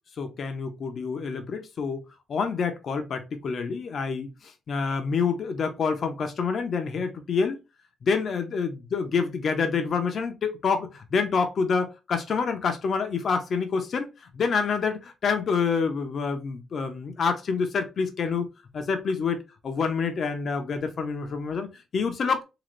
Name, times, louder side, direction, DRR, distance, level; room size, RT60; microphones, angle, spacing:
voice 1, 0.2-2.0 2.3-7.6 8.0-18.5 18.7-22.4, left 5 dB, 45° left, 0.9 m, -27 dB
3.9 x 2.7 x 3.2 m
cardioid pair, 145°, 0 cm